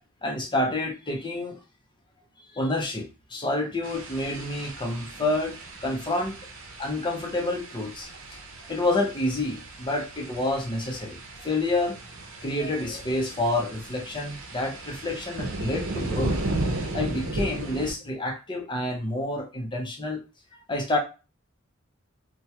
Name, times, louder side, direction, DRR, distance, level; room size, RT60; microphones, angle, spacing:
voice 1, 0.2-1.6 2.5-6.4 6.8-8.4 8.7-12.0 12.4-16.4 16.9-20.2 20.7-21.0, left 2 dB, 25° left, 1 dB, 0.7 m, -28 dB
sound 1, 3.8-17.9, right 2 dB, 70° right, 0.7 m, -35 dB
3.3 x 2.2 x 2.9 m, 0.31 s
head